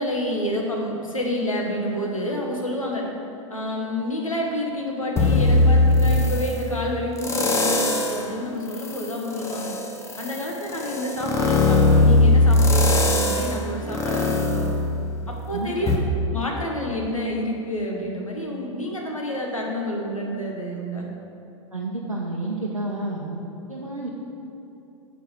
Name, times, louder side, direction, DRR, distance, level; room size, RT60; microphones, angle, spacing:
voice 1, 0.0-3.0 3.5-9.7 10.2-14.8 15.3-15.9 16.3-21.1, left 1 dB, 80° left, -1 dB, 1.2 m, -28 dB
sound 1, 5.2-6.6 7.2-8.2 8.7-15.4 15.9-16.0, left 2 dB, 15° left, 0.8 m, -20 dB
voice 2, 15.5-15.9 21.7-23.4 23.7-24.1, right 2 dB, 85° right, -4 dB, 0.8 m, -30 dB
6.8 x 4.5 x 6.4 m, 2.9 s
figure-of-eight pair, 95°, 17 cm